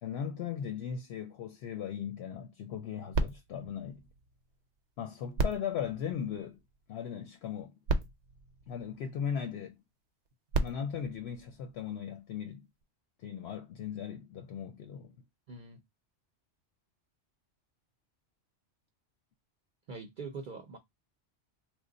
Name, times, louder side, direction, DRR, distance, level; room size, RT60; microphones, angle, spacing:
voice 1, 0.0-4.1 5.0-6.6 6.9-7.7 8.7-9.8 10.6-12.7 13.2-15.2, left 8 dB, 70° left, 0.8 m, -38 dB
sound 1, 3.1-4.8 5.3-6.9 7.6-7.7 7.9-9.4 10.3-12.1 12.8-12.9, right 3 dB, 80° right, 0.9 m, -36 dB
voice 2, 15.5-15.8 19.9-20.8, right 4 dB, 55° right, 0.6 m, -43 dB
3.1 x 2.1 x 3.8 m
omnidirectional pair, 1.2 m